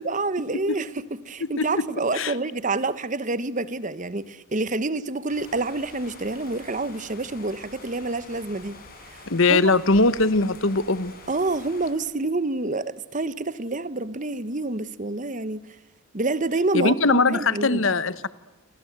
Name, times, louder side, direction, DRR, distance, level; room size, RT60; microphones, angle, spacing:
voice 1, 0.0-8.8 9.1-9.2 9.5-9.7 11.3-15.6 16.1-17.8, right 2 dB, 35° right, 1.0 m, -28 dB
sound 1, 5.3-11.9, left 3 dB, 40° left, 6.3 m, -46 dB
voice 2, 9.3-11.1 16.7-18.3, left 3 dB, 60° left, 1.2 m, -21 dB
29.5 x 24.0 x 8.0 m
head